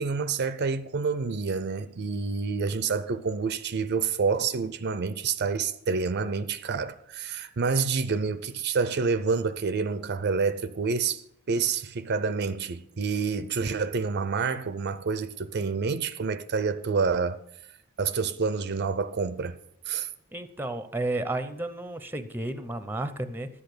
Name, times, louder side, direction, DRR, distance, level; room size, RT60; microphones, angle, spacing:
voice 1, 0.0-11.2 11.5-17.4 18.0-19.6 19.9-20.1, right 5 dB, 55° right, 0.6 m, -28 dB
voice 2, 20.3-23.5, right 2 dB, 10° right, 0.7 m, -32 dB
11.5 x 8.1 x 6.7 m
head